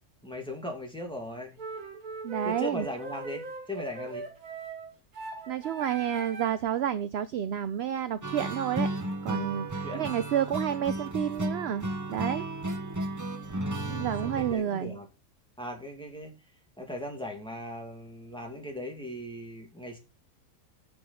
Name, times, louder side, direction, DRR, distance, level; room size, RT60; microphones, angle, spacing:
voice 1, 0.2-1.6 2.4-4.3 9.8-10.1 13.7-15.1 15.6-16.3 16.8-20.0, left 1 dB, 5° left, 2.3 m, -38 dB
sound 1, 1.6-6.7, right 3 dB, 90° right, 1.9 m, -41 dB
voice 2, 2.2-2.9 5.5-8.9 9.2-12.5 13.9-15.0, right 10 dB, 60° right, 0.7 m, -30 dB
sound 2, 8.2-14.5, right 1 dB, 15° right, 0.8 m, -33 dB
7.0 x 6.8 x 5.6 m
omnidirectional pair, 1.5 m